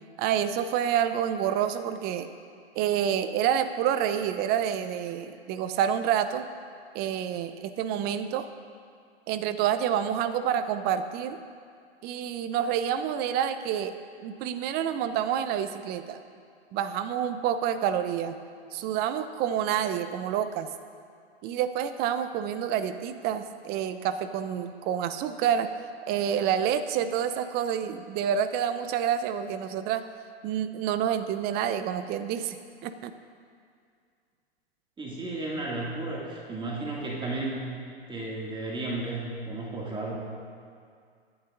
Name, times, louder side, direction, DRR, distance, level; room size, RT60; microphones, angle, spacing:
voice 1, 0.2-2.3 2.7-6.5 6.9-8.5 9.3-11.4 12.0-13.9 14.2-16.2 16.7-18.4 18.7-20.7 21.4-25.7 26.1-30.0 30.4-32.6 32.8-33.1, right 9 dB, 30° right, 11 dB, 0.7 m, -28 dB
voice 2, 35.0-37.6 38.1-40.2, right 2 dB, 15° right, -4 dB, 2.3 m, -33 dB
23.0 x 11.0 x 2.6 m, 2.2 s
figure-of-eight pair, 105°, 32 cm